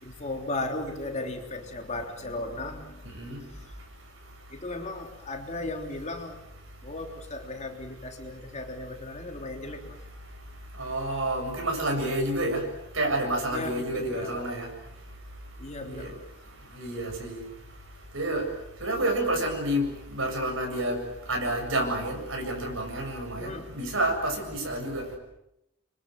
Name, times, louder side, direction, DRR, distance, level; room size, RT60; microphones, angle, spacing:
voice 1, 0.0-3.8 4.5-6.4 6.8-10.0 13.5-14.5 15.6-16.3 23.4-23.7, left 2 dB, 35° left, 3 dB, 3.5 m, -36 dB
voice 2, 10.8-12.6 12.9-14.7 15.9-16.1 16.7-17.4 18.1-18.5 18.8-21.0 21.3-25.0, right 1 dB, 80° right, 3 dB, 7.6 m, -29 dB
29.0 x 24.5 x 7.9 m, 0.84 s
head